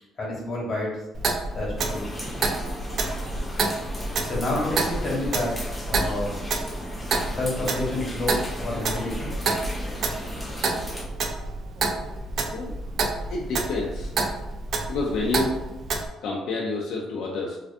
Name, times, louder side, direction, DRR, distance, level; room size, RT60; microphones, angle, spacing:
voice 1, 0.2-1.0 1.5-2.1 4.2-6.4 7.3-9.3, left 2 dB, 40° left, -4 dB, 1.0 m, -29 dB
Clock, 1.1-16.1, right 3 dB, 55° right, 0.3 m, -29 dB
sound 1, 1.8-11.1, left 1 dB, 10° left, 0.4 m, -37 dB
voice 2, 13.3-14.1 14.9-15.6 16.2-17.6, left 3 dB, 75° left, -2 dB, 0.4 m, -28 dB
2.5 x 2.3 x 2.4 m, 0.97 s
cardioid pair, 120°, 0 cm